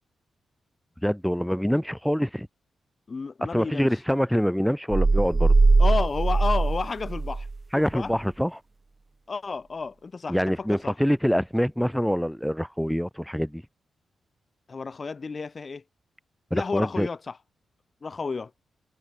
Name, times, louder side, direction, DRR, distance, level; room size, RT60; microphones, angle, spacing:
voice 1, 1.0-2.5 3.5-5.5 7.7-8.6 10.3-13.6 16.5-17.1, equal, ahead, 2.8 m, -25 dB
voice 2, 3.1-3.9 5.8-7.5 7.7-8.1 9.3-10.9 14.7-15.8 16.5-17.4 18.0-18.5, left 4 dB, 45° left, 6.7 m, -31 dB
sound 1, 4.9-7.6, right 3 dB, 35° right, 0.5 m, -20 dB
cardioid pair, 55°, 0 cm